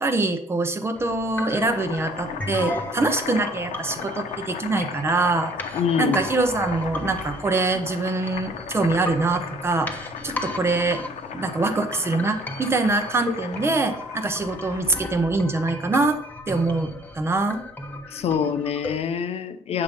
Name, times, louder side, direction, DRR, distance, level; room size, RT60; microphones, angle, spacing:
voice 1, 0.0-5.5 6.0-11.0 11.3-16.2 16.5-17.6, right 3 dB, 20° right, 8 dB, 0.9 m, -24 dB
sound 1, 0.9-18.9, left 2 dB, 15° left, 1.1 m, -36 dB
Boiling, 1.3-15.1, left 7 dB, 85° left, 1.1 m, -36 dB
voice 2, 5.7-6.2 18.1-19.8, left 7 dB, 60° left, 9 dB, 0.8 m, -25 dB
8.6 x 6.7 x 5.3 m, 0.72 s
cardioid pair, 150°, 12 cm